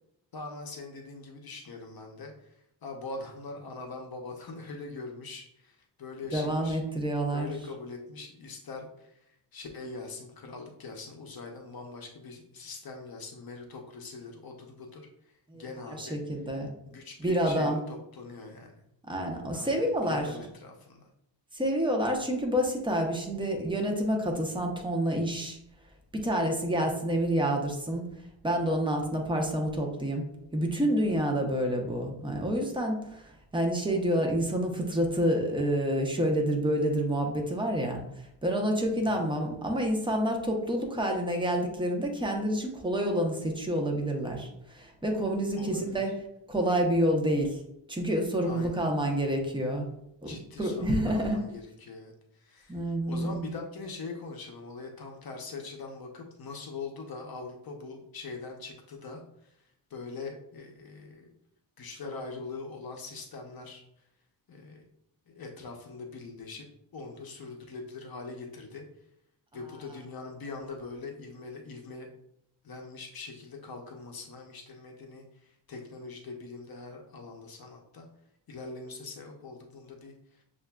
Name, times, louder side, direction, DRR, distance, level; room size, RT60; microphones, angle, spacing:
voice 1, 0.3-6.8 7.3-16.2 16.9-18.8 19.5-21.1 39.0-39.3 45.5-46.1 48.4-48.9 50.2-52.8 53.1-59.5 59.9-61.3 61.8-63.8 64.5-64.8 65.3-66.7 66.9-68.8 69.5-72.1 72.6-78.1 78.5-80.4, left 3 dB, 50° left, 2 dB, 0.7 m, -42 dB
voice 2, 6.3-7.5 15.5-15.6 15.9-16.7 17.2-17.8 19.1-20.3 21.5-25.6 26.1-28.0 28.4-30.2 30.5-38.0 38.4-46.1 46.5-47.6 47.9-49.9 50.2-51.4 52.7-53.5, equal, 10° right, 1 dB, 0.7 m, -28 dB
6.7 x 2.5 x 2.2 m, 0.78 s
cardioid pair, 95°, 46 cm